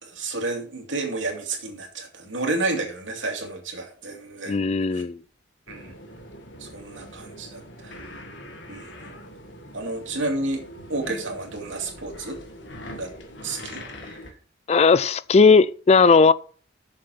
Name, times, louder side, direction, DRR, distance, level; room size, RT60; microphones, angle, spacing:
voice 1, 0.0-4.6 4.9-5.0 5.7-5.9 6.6-8.1 8.7-9.1 9.7-10.6 10.9-12.4 12.9-13.1 13.4-14.2, right 2 dB, 85° right, 2.5 m, -31 dB
voice 2, 4.5-5.2 14.7-16.3, left 4 dB, 35° left, 0.3 m, -17 dB
sound 1, 5.7-14.3, left 1 dB, 75° left, 1.8 m, -42 dB
7.6 x 6.7 x 5.7 m
head